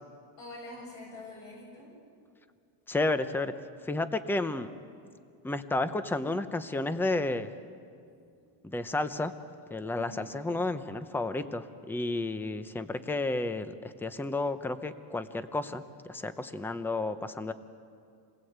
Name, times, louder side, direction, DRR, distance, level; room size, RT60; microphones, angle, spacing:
voice 1, 0.4-1.9 8.1-8.5 9.9-10.3, left 2 dB, 60° left, -3 dB, 7.9 m, -46 dB
voice 2, 2.9-3.5 3.8-4.7 5.4-7.5 8.6-9.3 9.7-17.5, left 2 dB, 5° left, 11 dB, 0.7 m, -32 dB
28.0 x 21.0 x 8.1 m, 2.4 s
cardioid pair, 145°, 49 cm